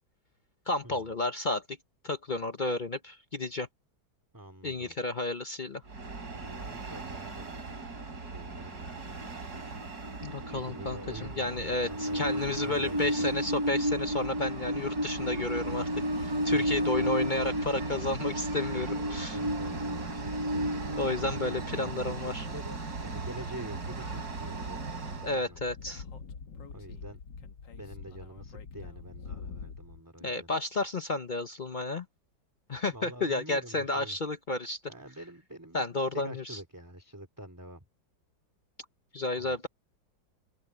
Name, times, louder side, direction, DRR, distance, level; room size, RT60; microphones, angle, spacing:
voice 1, 0.7-1.8 2.0-3.7 4.6-5.8 10.2-15.9 16.2-19.4 21.0-22.5 25.2-26.0 30.2-32.0 32.7-34.8 35.7-36.6 39.1-39.7, left 2 dB, 45° left, 0.6 m, -32 dB
voice 2, 4.3-5.0 6.3-9.7 10.4-13.3 16.5-16.9 19.2-25.6 26.7-27.2 27.8-30.5 32.9-34.2 34.9-37.8 39.3-39.7, right 1 dB, 10° right, 2.9 m, -47 dB
Train, 5.9-25.4, right 1 dB, 55° right, 3.9 m, -34 dB
Speech / Wind, 25.1-30.0, left 5 dB, 75° left, 2.2 m, -45 dB
omnidirectional pair, 2.0 m